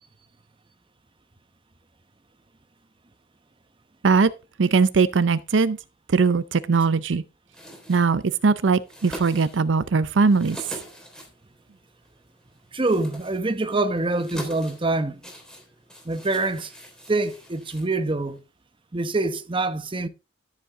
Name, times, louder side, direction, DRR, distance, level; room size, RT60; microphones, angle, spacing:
voice 1, 4.6-5.8 6.1-7.2 7.9-10.6, right 4 dB, 75° right, 0.5 m, -20 dB
sound 1, 7.5-18.4, equal, 5° left, 3.4 m, -44 dB
voice 2, 12.7-15.2 16.0-16.7 17.1-18.4 18.9-20.1, right 2 dB, 30° right, 0.9 m, -25 dB
13.0 x 7.4 x 3.6 m
head